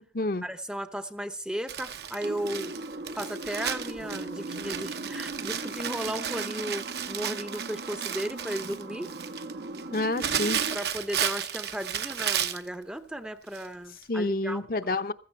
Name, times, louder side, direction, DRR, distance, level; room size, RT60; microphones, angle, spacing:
voice 1, 0.4-2.7 3.2-9.1 10.7-14.6, right 1 dB, 5° right, 0.6 m, -35 dB
Crumpling crinkling, 1.7-12.7 13.5-13.7 14.0-14.1, right 8 dB, 70° right, 1.0 m, -33 dB
sound 1, 2.2-10.8, right 2 dB, 85° right, 1.3 m, -39 dB
voice 2, 9.9-10.6 14.1-15.1, left 2 dB, 55° left, 0.8 m, -28 dB
15.5 x 14.0 x 4.5 m
head